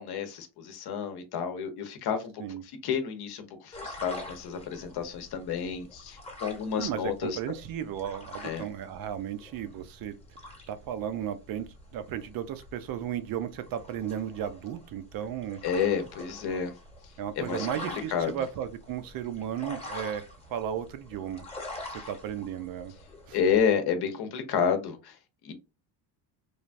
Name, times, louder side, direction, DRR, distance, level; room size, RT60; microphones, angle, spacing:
voice 1, 0.0-7.4 8.4-8.7 15.6-16.7 17.4-18.4 21.9-22.1 23.3-25.2 25.4-25.5, left 7 dB, 55° left, 0.8 m, -30 dB
sound 1, 3.7-23.6, left 1 dB, 15° left, 1.0 m, -45 dB
voice 2, 6.8-10.2 10.7-15.6 17.2-20.2 20.5-21.4 21.9-22.9 23.3-23.4, right 10 dB, 50° right, 0.5 m, -35 dB
3.2 x 2.3 x 2.5 m
cardioid pair, 120°, 46 cm